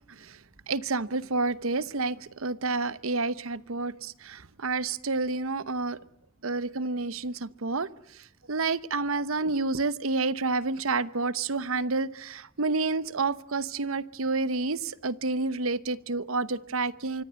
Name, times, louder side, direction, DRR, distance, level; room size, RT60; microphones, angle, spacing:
voice 1, 0.1-0.4 0.7-6.0 6.4-7.9 8.5-17.2, right 3 dB, 80° right, 16 dB, 1.0 m, -29 dB
25.5 x 24.5 x 7.7 m, 0.68 s
head